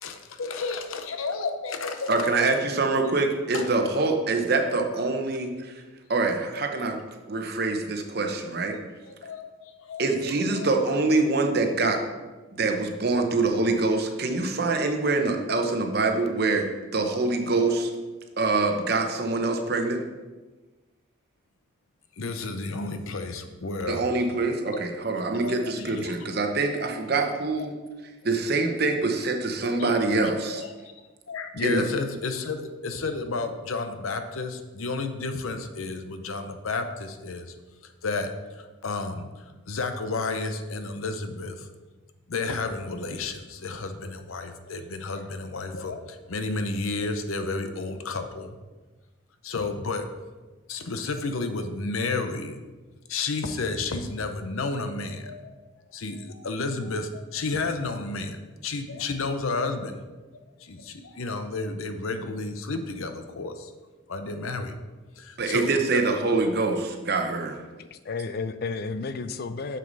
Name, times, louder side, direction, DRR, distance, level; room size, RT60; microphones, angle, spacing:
voice 1, 0.0-2.6 3.5-3.7 6.5-6.6 8.7-10.1 10.5-10.7 22.2-24.0 25.2-26.5 29.7-30.9 31.3-37.5 37.8-41.7 42.3-48.6 49.4-50.1 50.7-52.6 53.1-55.6 55.9-60.1 60.3-63.7 64.1-64.8 65.2-66.0, left 3 dB, 85° left, 8 dB, 0.7 m, -32 dB
voice 2, 2.1-5.7 6.1-7.0 7.3-8.8 10.0-12.0 12.5-16.7 16.9-17.9 18.4-20.0 23.9-27.7 28.2-30.6 31.6-31.8 65.4-67.6, right 3 dB, 50° right, 4 dB, 0.8 m, -25 dB
voice 3, 67.8-69.8, left 4 dB, 50° left, 11 dB, 0.4 m, -32 dB
6.7 x 6.3 x 4.0 m, 1.2 s
head